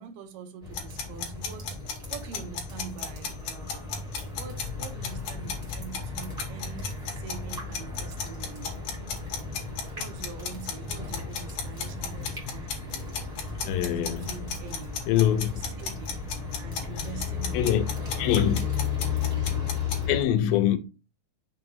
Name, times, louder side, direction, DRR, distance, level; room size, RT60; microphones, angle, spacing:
voice 1, 0.0-1.8 2.1-3.9 4.3-8.8 9.9-13.1 13.5-15.0 15.7-16.2 16.6-18.2, right 7 dB, 80° right, 2.5 m, -44 dB
sound 1, 0.6-20.2, left 6 dB, 20° right, 1.0 m, -35 dB
sound 2, 0.7-19.9, left 6 dB, 70° left, 2.7 m, -34 dB
voice 2, 13.7-14.7 15.1-15.5 17.5-17.8 18.2-18.6 20.1-20.8, left 11 dB, 90° left, 2.4 m, -24 dB
6.5 x 2.6 x 5.6 m
omnidirectional pair, 3.9 m